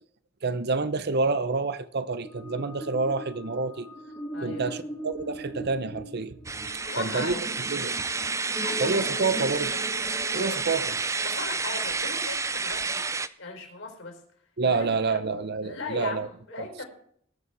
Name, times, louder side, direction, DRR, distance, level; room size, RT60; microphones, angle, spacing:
voice 1, 0.4-3.9 4.4-6.3 7.0-7.4 7.7-8.0 8.8-9.7 10.3-11.0 14.6-16.3, right 4 dB, 55° right, 0.7 m, -28 dB
sound 1, 2.1-11.4, right 1 dB, 15° left, 2.1 m, -40 dB
voice 2, 4.3-4.8 6.6-7.4 7.7-7.9 8.6-9.0 9.5-9.6 10.3-10.6 11.2-13.1 13.4-14.2 14.6-15.2 15.6-16.9, left 3 dB, 65° left, 4.0 m, -38 dB
sound 2, 6.4-13.3, right 4 dB, 15° right, 0.4 m, -30 dB
19.5 x 7.0 x 4.7 m
head